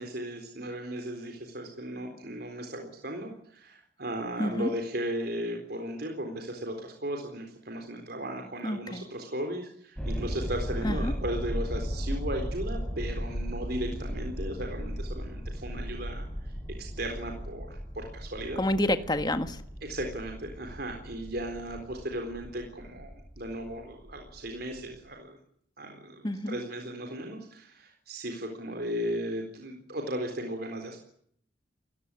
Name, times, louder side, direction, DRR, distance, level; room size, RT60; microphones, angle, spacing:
voice 1, 0.0-18.6 19.8-25.4 25.8-31.0, right 1 dB, 55° right, 4 dB, 4.0 m, -36 dB
voice 2, 4.4-4.7 8.6-9.0 10.8-11.1 18.6-19.6 26.2-26.6, left 1 dB, 20° left, 9 dB, 1.6 m, -28 dB
sound 1, 10.0-25.0, equal, 5° left, 5.5 m, -36 dB
29.5 x 16.5 x 9.9 m, 0.67 s
head